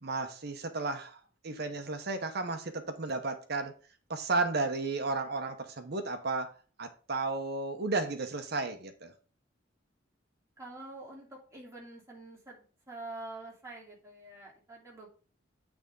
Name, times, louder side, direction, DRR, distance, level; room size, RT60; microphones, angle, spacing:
voice 1, 0.0-3.7 4.1-6.5 6.8-9.1, right 3 dB, 55° right, 0.9 m, -33 dB
voice 2, 10.6-15.1, right 2 dB, 15° right, 2.8 m, -46 dB
9.0 x 3.6 x 5.2 m
head